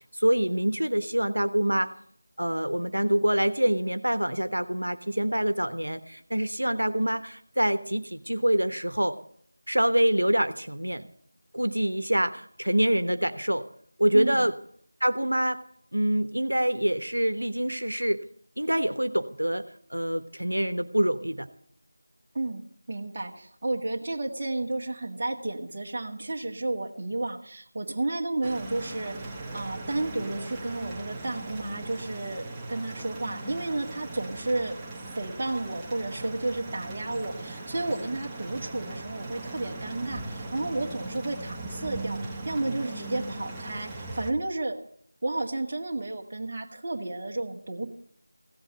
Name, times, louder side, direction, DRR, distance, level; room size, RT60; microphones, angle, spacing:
voice 1, 0.1-1.9 2.4-9.2 9.7-11.1 11.5-13.7 14.0-14.5 15.0-15.6 15.9-18.2 18.6-19.6 19.9-21.5, right 1 dB, 85° right, 10 dB, 1.2 m, -25 dB
voice 2, 14.1-14.5 22.3-44.8 45.2-47.9, right 2 dB, 30° right, 0 dB, 1.9 m, -32 dB
sound 1, 28.4-44.3, right 2 dB, 10° right, 1.0 m, -39 dB
16.5 x 8.2 x 8.0 m, 0.63 s
figure-of-eight pair, 170°, 0 cm